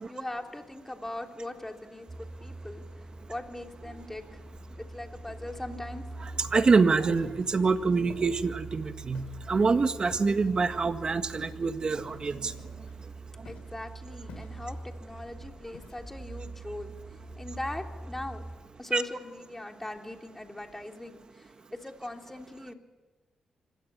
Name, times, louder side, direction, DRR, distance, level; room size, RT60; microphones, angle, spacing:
voice 1, 0.1-2.8 3.3-4.4 4.7-6.1 13.4-16.9 17.4-18.5 18.8-22.7, left 1 dB, 15° left, 3 dB, 3.3 m, -40 dB
Truck, 2.1-18.6, right 3 dB, 25° right, 6.6 m, -44 dB
sound 1, 3.6-4.8 5.2-7.3 7.7-8.9 9.4-11.3 11.8-13.0, right 4 dB, 85° right, 6.3 m, -57 dB
voice 2, 6.2-12.5 18.9-19.0, right 4 dB, 45° right, 9 dB, 1.8 m, -26 dB
Walk footsteps, 7.1-7.4 8.1-8.3 9.1-9.5 10.1-10.5 11.3-11.7 12.6-13.0 13.4-13.8 14.3-14.8 15.7-16.2, left 6 dB, 85° left, 3.8 m, -49 dB
25.5 x 16.5 x 10.0 m, 1.3 s
cardioid pair, 65°, 2 cm